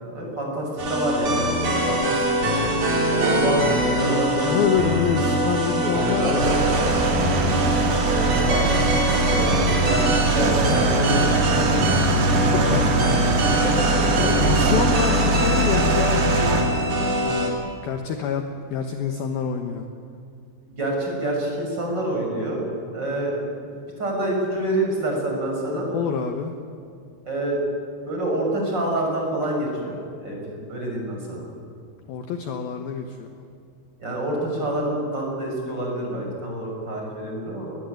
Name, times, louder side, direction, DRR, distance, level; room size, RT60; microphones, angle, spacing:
voice 1, 0.0-1.5 1.8-2.5 3.1-4.6 5.0-5.2 8.0-8.7 9.0-11.9 12.5-13.5 20.6-23.7 24.0-25.9 27.3-27.6 28.1-31.4 34.0-37.7, right 1 dB, 20° right, -1 dB, 6.5 m, -27 dB
sound 1, 0.8-17.5, equal, 40° right, 4.3 m, -23 dB
voice 2, 4.4-6.9 9.2-9.5 12.4-12.8 14.0-16.8 17.2-17.6 17.8-19.9 25.8-26.5 32.1-33.3, left 7 dB, 75° left, 5 dB, 2.2 m, -27 dB
sound 2, 6.4-16.6, right 3 dB, 60° right, 4.3 m, -22 dB
Organ, 10.1-16.6, left 11 dB, 40° left, 4.5 m, -42 dB
22.0 x 21.0 x 9.2 m, 2.5 s
omnidirectional pair, 6.0 m